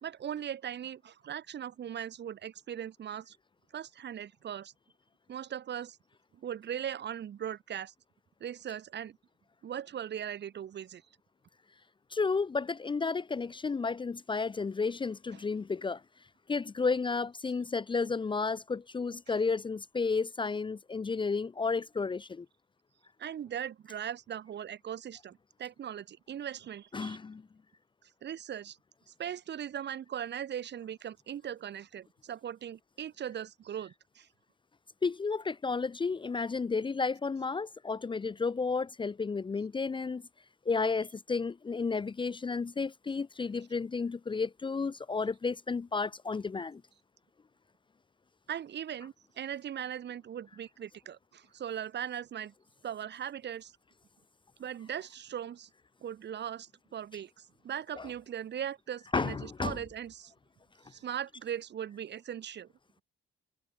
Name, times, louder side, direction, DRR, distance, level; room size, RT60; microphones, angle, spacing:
voice 1, 0.0-3.4 3.7-4.7 5.3-6.0 6.3-7.9 8.4-9.2 9.6-11.0 19.3-19.4 23.2-27.2 28.2-28.8 29.2-34.3 48.5-52.5 52.8-53.7 54.6-55.7 56.0-60.3 60.9-62.7, right 9 dB, 60° right, 3.0 m, -39 dB
voice 2, 12.1-16.0 16.5-22.5 26.9-27.4 35.0-40.2 40.7-46.8 58.0-58.1 59.1-59.8, left 4 dB, 25° left, 0.6 m, -32 dB
cardioid pair, 90°, 20 cm